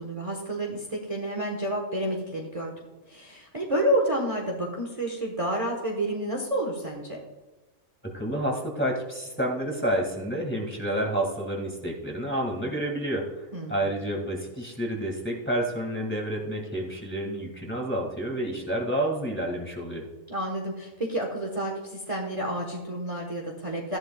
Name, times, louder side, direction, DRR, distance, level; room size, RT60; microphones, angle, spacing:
voice 1, 0.0-2.7 3.1-7.2 13.5-13.9 20.3-24.0, right 1 dB, 25° right, 0 dB, 1.2 m, -29 dB
voice 2, 8.1-13.4 13.7-20.1, right 1 dB, 10° left, -1 dB, 1.8 m, -29 dB
14.0 x 11.0 x 2.3 m, 1.2 s
omnidirectional pair, 1.4 m